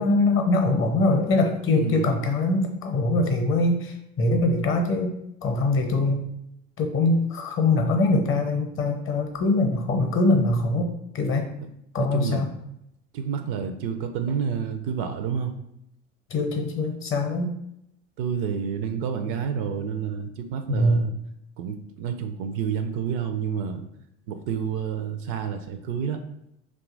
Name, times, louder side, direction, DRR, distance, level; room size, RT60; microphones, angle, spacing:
voice 1, 0.0-5.1 5.4-6.2 6.8-10.9 11.1-11.5 11.9-12.5 16.3-17.5 20.7-21.0, left 2 dB, 30° left, 3 dB, 0.7 m, -23 dB
voice 2, 1.8-2.2 12.1-12.4 13.1-15.5 18.2-21.1 21.6-23.8 24.3-26.2, right 7 dB, 55° right, 8 dB, 0.5 m, -29 dB
2.7 x 2.4 x 3.8 m, 0.79 s
hypercardioid pair, 80°, 40 cm